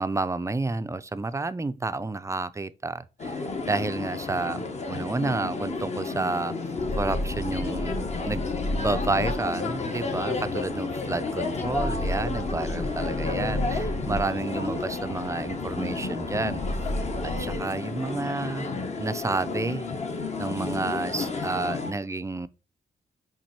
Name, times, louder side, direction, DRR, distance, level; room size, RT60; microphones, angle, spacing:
voice 1, 0.0-6.6 7.0-8.0 8.3-8.4 8.8-16.6 17.2-18.7 19.0-19.9 20.4-22.5, right 3 dB, 15° right, 0.5 m, -30 dB
sound 1, 3.2-21.9, left 3 dB, 40° left, 1.4 m, -32 dB
sound 2, 6.8-17.6, left 1 dB, 55° left, 1.4 m, -33 dB
6.0 x 5.3 x 4.3 m
wide cardioid pair, 125°, 17 cm